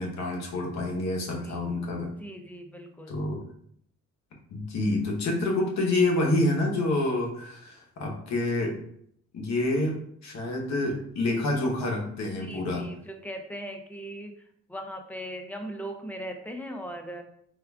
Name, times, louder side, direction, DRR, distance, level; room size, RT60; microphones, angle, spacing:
voice 1, 0.0-2.1 3.1-3.4 4.5-8.8 9.3-12.8, left 2 dB, 65° left, 0 dB, 0.9 m, -28 dB
voice 2, 1.4-1.7 2.2-3.1 12.4-17.2, equal, 5° left, 3 dB, 0.5 m, -39 dB
4.6 x 2.3 x 2.3 m, 0.67 s
cardioid pair, 90°, 30 cm